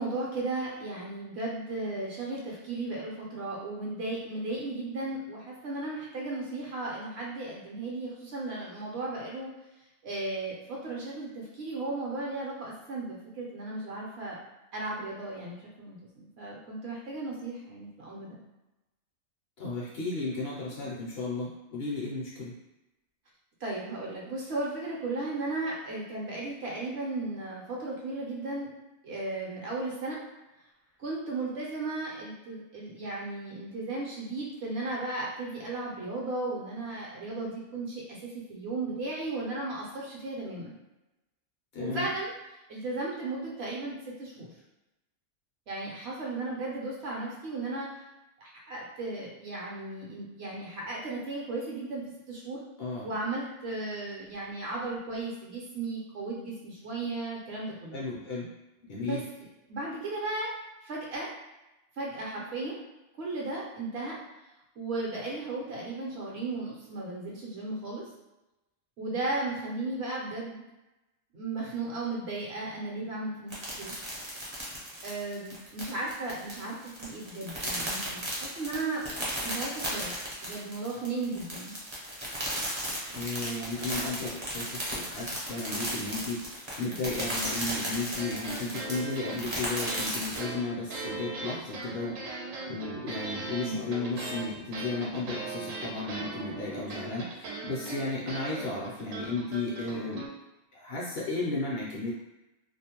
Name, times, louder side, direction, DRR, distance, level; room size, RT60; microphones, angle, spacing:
voice 1, 0.0-9.5 10.0-14.4 14.7-18.4 23.6-28.7 29.0-30.2 31.0-40.8 41.8-42.3 42.7-44.5 45.7-48.0 48.4-52.6 53.0-58.0 59.1-59.2 59.7-60.5 60.8-61.3 62.0-62.8 63.2-64.2 64.8-68.0 69.0-70.6 71.3-74.0 75.0-80.1 80.4-81.7 93.6-93.7, right 2 dB, 65° right, -4 dB, 0.8 m, -35 dB
voice 2, 19.6-22.5 41.7-42.1 52.8-53.2 57.9-58.5 58.9-59.2 83.1-92.2 92.7-100.2 100.7-102.1, left 3 dB, 60° left, -4 dB, 0.7 m, -34 dB
sound 1, 73.5-90.4, equal, 30° right, 0.5 m, -35 dB
sound 2, 88.2-100.3, right 3 dB, 90° right, 1.0 m, -39 dB
2.4 x 2.0 x 2.8 m, 0.99 s
omnidirectional pair, 1.3 m